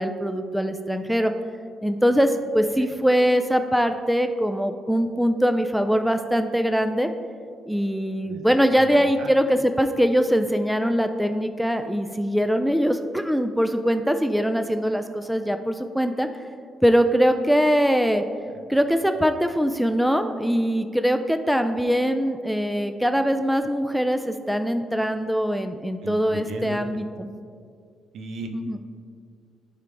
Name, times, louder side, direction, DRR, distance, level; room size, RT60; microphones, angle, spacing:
voice 1, 0.0-1.3 1.8-7.1 7.7-16.3 16.8-18.2 18.7-27.3 28.5-28.8, equal, ahead, 7 dB, 0.4 m, -22 dB
voice 2, 26.0-26.8 28.1-28.5, right 4 dB, 70° right, 4 dB, 0.7 m, -35 dB
11.0 x 3.8 x 3.5 m, 2.2 s
cardioid pair, 90°, 0 cm